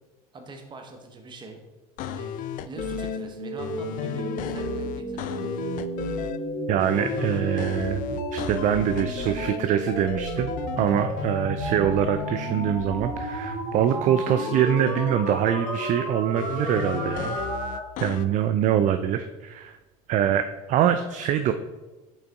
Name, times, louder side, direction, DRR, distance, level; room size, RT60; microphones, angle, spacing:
voice 1, 0.3-1.6 2.0-2.4 2.7-5.5, right 3 dB, 25° right, 3 dB, 0.9 m, -43 dB
sound 1, 2.0-3.2 3.6-6.4 6.8-9.6 9.9-12.8 14.3-15.8 16.4-18.3, left 10 dB, 45° left, 0.4 m, -35 dB
sound 2, 2.8-17.8, right 1 dB, 85° right, 1.9 m, -32 dB
voice 2, 6.7-17.4 18.0-19.8 20.1-21.5, right 10 dB, 40° right, 9 dB, 0.4 m, -24 dB
5.2 x 5.2 x 3.6 m, 1.2 s
hypercardioid pair, 85°, 19 cm